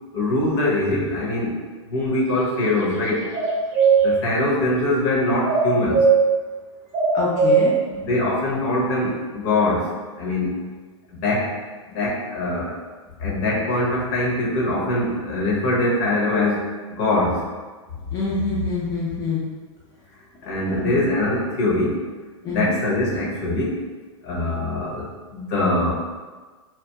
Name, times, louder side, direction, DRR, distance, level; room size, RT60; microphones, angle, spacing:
voice 1, 0.1-1.6 1.9-3.3 4.0-6.0 7.9-9.9 10.2-10.6 11.1-11.5 11.9-12.7 13.2-17.4 20.4-22.0 22.5-23.8 24.2-25.9, left 2 dB, 50° left, -4 dB, 0.8 m, -23 dB
sound 1, 3.3-3.9 5.5-6.1 6.9-7.6, right 5 dB, 35° right, 0.7 m, -17 dB
voice 2, 7.1-7.8 18.1-19.4 20.7-20.9 22.4-22.7, left 3 dB, 20° left, -7 dB, 0.5 m, -25 dB
2.8 x 2.2 x 2.2 m, 1.4 s
hypercardioid pair, 115°, 16 cm